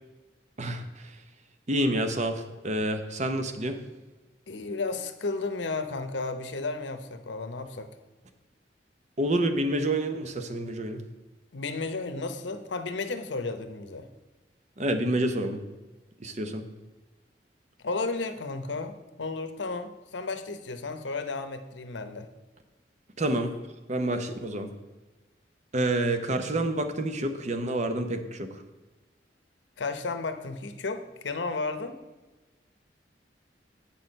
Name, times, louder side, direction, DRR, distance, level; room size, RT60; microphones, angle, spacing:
voice 1, 0.6-1.2 1.7-3.8 9.2-11.0 14.8-15.6 16.2-16.6 23.2-23.5 23.9-24.7 25.7-28.6, right 1 dB, 40° right, 8 dB, 0.8 m, -28 dB
voice 2, 4.5-7.9 11.5-14.1 17.8-22.3 29.8-32.0, left 3 dB, 85° left, 9 dB, 0.8 m, -33 dB
8.4 x 6.2 x 5.2 m, 1.2 s
head